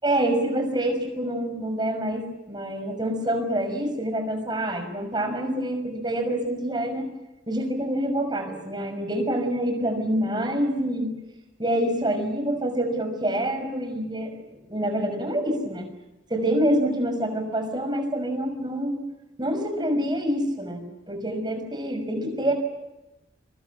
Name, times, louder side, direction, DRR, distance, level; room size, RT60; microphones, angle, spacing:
voice 1, 0.0-7.1 7.5-11.1 11.6-14.4 14.7-15.8 16.3-19.0 19.4-22.5, right 1 dB, 25° right, 5 dB, 6.1 m, -26 dB
30.0 x 24.0 x 7.3 m, 0.97 s
head